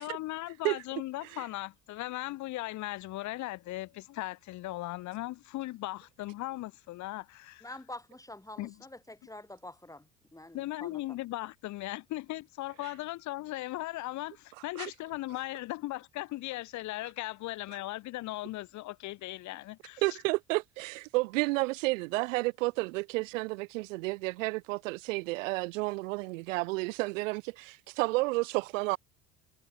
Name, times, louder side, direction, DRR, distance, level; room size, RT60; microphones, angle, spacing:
voice 1, 0.0-7.6 8.6-8.7 10.5-20.2, left 17 dB, 45° left, 0.7 m, -38 dB
voice 2, 7.6-11.0, left 1 dB, 10° left, 5.2 m, -47 dB
voice 3, 20.0-29.0, right 23 dB, 70° right, 0.6 m, -31 dB
hypercardioid pair, 65°, 39 cm